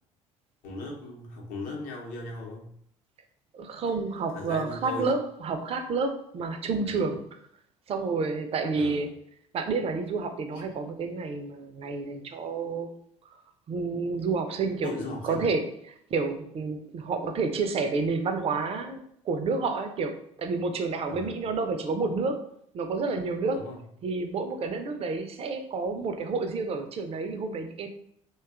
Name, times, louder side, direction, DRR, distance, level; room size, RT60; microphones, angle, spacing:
voice 1, 0.6-2.7 4.3-5.1 6.9-7.0 8.8-9.0 10.5-10.7 14.8-15.5 21.1-21.4 23.5-23.8, left 2 dB, 60° left, 0 dB, 0.7 m, -38 dB
voice 2, 3.5-7.3 7.9-9.2 9.5-12.9 13.7-19.0 19.2-22.4 22.7-23.6 24.0-27.9, right 4 dB, 40° right, 6 dB, 0.4 m, -29 dB
2.6 x 2.2 x 2.3 m, 0.69 s
hypercardioid pair, 60°, 16 cm